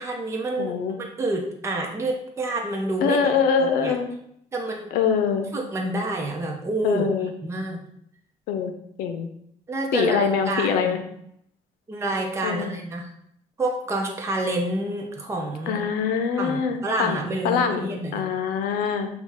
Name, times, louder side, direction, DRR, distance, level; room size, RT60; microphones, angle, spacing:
voice 1, 0.0-3.2 3.6-3.9 4.5-4.9 5.5-7.1 7.4-7.9 9.7-11.0 11.9-13.1 13.6-15.9 16.4-18.2, right 2 dB, 20° right, 0 dB, 0.8 m, -28 dB
voice 2, 0.6-0.9 3.0-4.1 4.9-5.5 6.8-7.3 8.5-8.7 9.0-9.3 9.9-11.0 12.4-12.7 15.7-19.1, left 6 dB, 90° left, 7 dB, 0.6 m, -24 dB
6.0 x 2.3 x 3.6 m, 0.73 s
cardioid pair, 110°, 15 cm